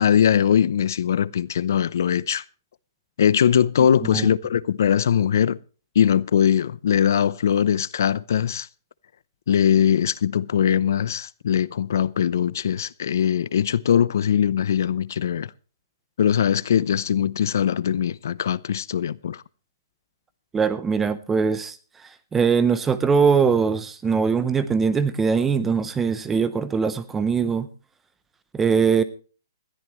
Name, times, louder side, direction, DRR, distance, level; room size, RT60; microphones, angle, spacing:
voice 1, 0.0-2.4 3.2-5.6 5.9-8.7 9.5-15.5 16.2-19.4, left 9 dB, 50° left, 0.6 m, -21 dB
voice 2, 20.5-21.8 22.3-27.7 28.5-29.0, right 6 dB, 5° right, 0.6 m, -21 dB
20.5 x 14.0 x 3.1 m
hypercardioid pair, 175°, 2 cm